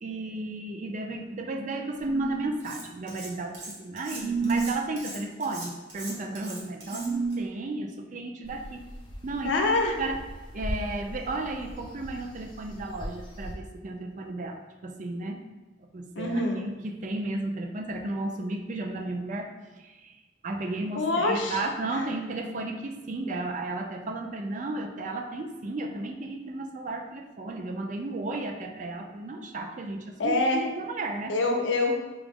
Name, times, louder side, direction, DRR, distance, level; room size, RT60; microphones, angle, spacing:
voice 1, 0.0-8.9 9.2-9.6 10.0-10.2 10.5-15.4 15.8-19.5 19.8-20.2 20.4-31.3, right 2 dB, 40° right, 4 dB, 0.4 m, -34 dB
sound 1, 1.9-2.6 4.1-4.8 6.9-7.5, right 5 dB, 85° right, 1.3 m, -29 dB
Cutlery silverware, 2.6-3.3 3.5-7.3, right 2 dB, 65° right, 1.2 m, -41 dB
sound 2, 8.4-13.6, equal, 25° left, 0.6 m, -40 dB
voice 2, 9.4-10.0 16.2-16.6 21.0-21.6 21.9-22.0 30.2-30.6 31.3-31.9, left 2 dB, 70° left, 2 dB, 0.6 m, -25 dB
4.7 x 2.0 x 3.5 m, 1.2 s
head